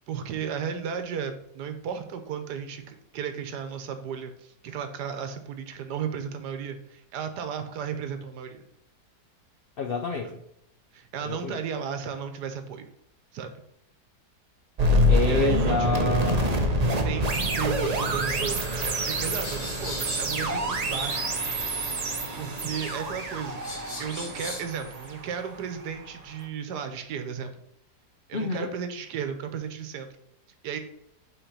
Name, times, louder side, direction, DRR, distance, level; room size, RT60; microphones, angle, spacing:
voice 1, 0.0-8.6 10.1-10.4 10.9-12.9 13.3-13.5 15.2-16.1 17.0-18.6 18.8-21.3 22.4-23.6 24.0-27.5 28.3-30.1 30.6-30.8, right 7 dB, 90° right, 8 dB, 1.4 m, -34 dB
voice 2, 9.8-10.4 11.2-11.6 15.1-17.2 28.3-28.7, left 5 dB, 75° left, 4 dB, 0.5 m, -29 dB
sound 1, 14.8-25.8, equal, 45° right, 0.5 m, -26 dB
sound 2, 19.4-24.6, left 2 dB, 45° left, 1.7 m, -40 dB
5.8 x 3.9 x 5.6 m, 0.77 s
omnidirectional pair, 1.7 m